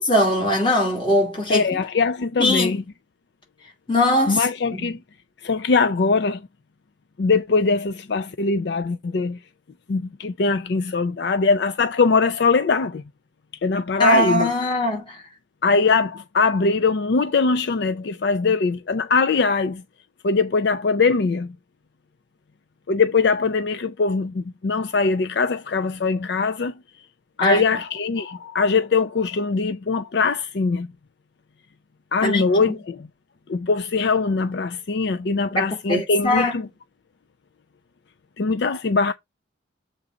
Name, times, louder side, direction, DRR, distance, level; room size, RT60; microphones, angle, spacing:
voice 1, 0.1-1.8 2.4-2.8 3.9-4.4 4.7-4.9 14.0-15.2 27.4-27.6 32.2-32.8 35.6-36.5, left 1 dB, 25° left, 2.8 m, -21 dB
voice 2, 1.5-2.8 4.3-5.0 5.4-6.4 7.2-9.4 9.9-13.0 13.6-14.5 15.6-19.8 20.2-21.5 22.9-26.7 27.4-30.9 32.1-33.1 33.5-36.7 38.4-39.1, left 4 dB, 55° left, 0.4 m, -21 dB
7.0 x 3.8 x 4.9 m
head